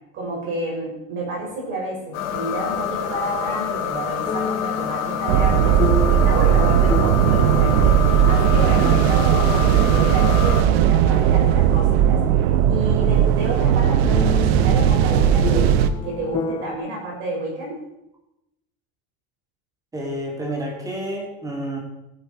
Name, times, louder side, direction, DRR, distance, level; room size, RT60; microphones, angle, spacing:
voice 1, 0.1-5.8 6.1-7.9 8.2-15.8 16.0-17.8, right 2 dB, 35° right, -3 dB, 5.9 m, -30 dB
sound 1, 1.9-3.3 4.3-13.0 13.4-13.5 14.0-16.8, left 6 dB, 15° left, 0.4 m, -32 dB
sound 2, 2.1-10.6, left 8 dB, 65° left, 2.8 m, -27 dB
sound 3, 5.3-15.9, right 10 dB, 70° right, 1.0 m, -17 dB
voice 2, 19.9-21.8, right 1 dB, 10° right, 0 dB, 2.6 m, -29 dB
16.5 x 9.3 x 4.6 m, 0.88 s
cardioid pair, 170°, 33 cm